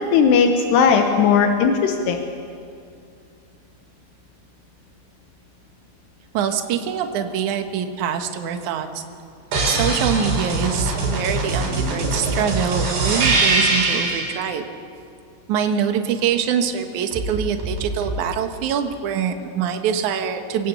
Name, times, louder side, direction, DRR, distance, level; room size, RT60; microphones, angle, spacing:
voice 1, 0.0-2.2, left 6 dB, 80° left, 4 dB, 3.3 m, -17 dB
voice 2, 6.3-9.0 9.7-14.6 15.5-20.7, right 8 dB, 60° right, 6 dB, 2.3 m, -24 dB
sound 1, 9.5-14.4 17.1-18.2, right 2 dB, 80° right, 6.4 m, -22 dB
26.5 x 18.0 x 8.0 m, 2.4 s
omnidirectional pair, 4.7 m